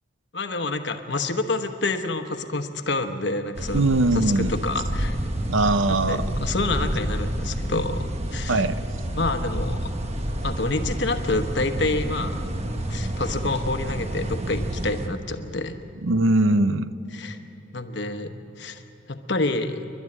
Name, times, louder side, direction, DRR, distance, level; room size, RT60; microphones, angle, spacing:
voice 1, 0.3-3.8 4.1-5.2 5.9-8.7 9.1-9.9 10.4-12.3 12.9-15.8 17.1-17.4 17.7-18.8 19.1-19.9, left 2 dB, 60° left, 7 dB, 1.1 m, -28 dB
sound 1, 3.5-15.1, right 1 dB, 30° right, 1.2 m, -29 dB
voice 2, 3.7-4.5 5.5-6.2 8.5-8.8 16.0-16.9, right 2 dB, 75° right, 12 dB, 0.7 m, -21 dB
29.0 x 12.0 x 9.7 m, 2.9 s
head